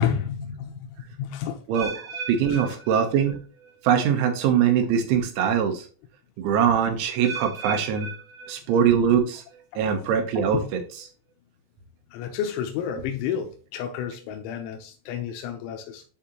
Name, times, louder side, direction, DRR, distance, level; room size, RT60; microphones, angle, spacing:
voice 1, 0.0-1.7 2.5-2.6 10.5-10.6 12.1-16.0, left 9 dB, 85° left, 3.2 m, -30 dB
sound 1, 1.7-3.8 4.0-4.5 5.1-5.2 7.2-9.2 9.5-9.9 10.6-10.7, right 5 dB, 55° right, 1.9 m, -38 dB
voice 2, 1.7-3.3 3.8-5.9 6.4-8.1 8.5-9.4 9.8-10.6, right 8 dB, 85° right, 3.4 m, -22 dB
11.0 x 3.8 x 2.9 m
omnidirectional pair, 5.3 m